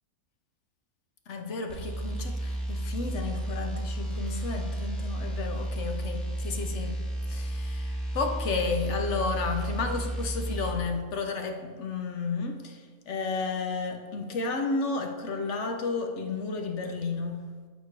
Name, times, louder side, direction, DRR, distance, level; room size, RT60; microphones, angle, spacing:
voice 1, 1.3-7.0 7.3-17.5, left 4 dB, 60° left, 5 dB, 1.0 m, -32 dB
sound 1, 1.7-10.8, right 1 dB, ahead, 1.2 m, -32 dB
8.4 x 4.5 x 4.6 m, 1.5 s
omnidirectional pair, 1.5 m